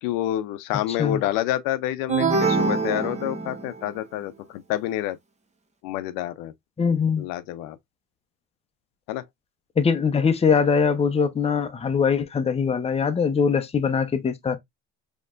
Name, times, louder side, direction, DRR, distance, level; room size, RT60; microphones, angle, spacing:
voice 1, 0.0-5.2 5.8-6.5 7.2-7.8 9.1-9.2, left 13 dB, 85° left, 0.6 m, -28 dB
voice 2, 0.7-1.2 6.8-7.3 9.8-14.6, left 6 dB, 20° left, 0.6 m, -22 dB
sound 1, 2.1-3.9, right 4 dB, 20° right, 0.8 m, -24 dB
4.3 x 3.0 x 2.4 m
cardioid pair, 105°, 33 cm